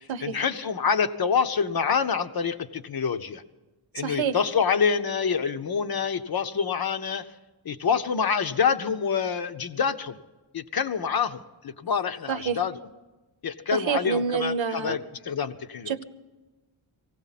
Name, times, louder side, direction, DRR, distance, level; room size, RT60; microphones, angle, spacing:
voice 1, 0.2-3.4 3.9-7.3 7.6-10.2 10.5-12.8 13.4-15.0 15.2-15.9, left 6 dB, 50° left, 10 dB, 0.8 m, -26 dB
voice 2, 3.9-4.4 12.3-12.6 13.7-15.0 15.9-16.0, right 7 dB, 70° right, 11 dB, 0.9 m, -28 dB
18.5 x 16.0 x 4.1 m, 1.2 s
wide cardioid pair, 140°, 48 cm